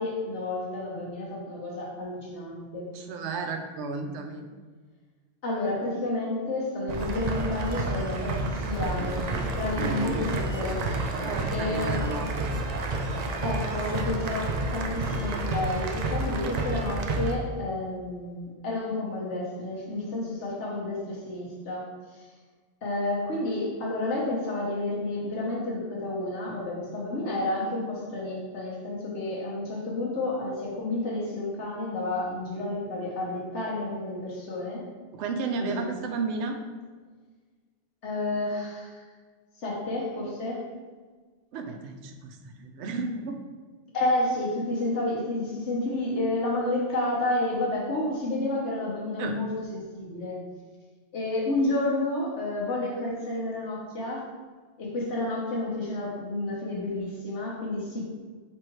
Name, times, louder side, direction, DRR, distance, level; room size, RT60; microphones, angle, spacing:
voice 1, 0.0-2.9 5.4-10.8 11.5-12.0 13.4-21.9 22.1-22.2 22.8-34.8 35.6-35.8 38.0-38.9 39.6-40.7 43.9-50.4 51.1-54.2 54.8-58.1, left 2 dB, 80° left, -4 dB, 1.4 m, -30 dB
voice 2, 2.9-4.5 9.8-10.3 11.2-12.3 35.1-36.6 41.5-43.4 49.2-49.4, right 4 dB, 80° right, 4 dB, 0.9 m, -33 dB
sound 1, 6.9-17.3, right 2 dB, 60° right, 0.4 m, -30 dB
4.6 x 3.4 x 3.0 m, 1.4 s
omnidirectional pair, 1.2 m